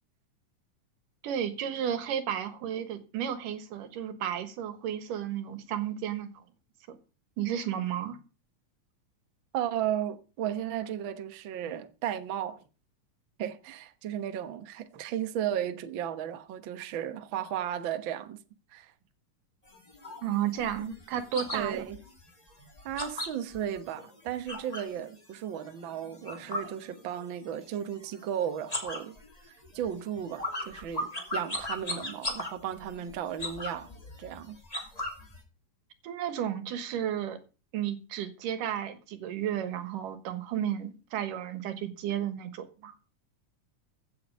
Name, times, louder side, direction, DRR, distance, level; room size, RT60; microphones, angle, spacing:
voice 1, 1.2-6.4 6.9-7.0 7.4-8.2 20.2-21.9 36.0-37.4 37.7-42.9, right 9 dB, 85° right, 3.0 m, -33 dB
voice 2, 9.5-12.6 13.4-18.4 18.7-18.9 21.5-22.0 22.8-29.2 29.7-33.9 34.2-34.6, right 10 dB, 60° right, 1.4 m, -34 dB
sound 1, 19.7-25.0 25.3-27.5 27.7-28.3 28.6-35.4, left 1 dB, 10° left, 2.5 m, -38 dB
15.5 x 8.0 x 5.4 m
omnidirectional pair, 3.7 m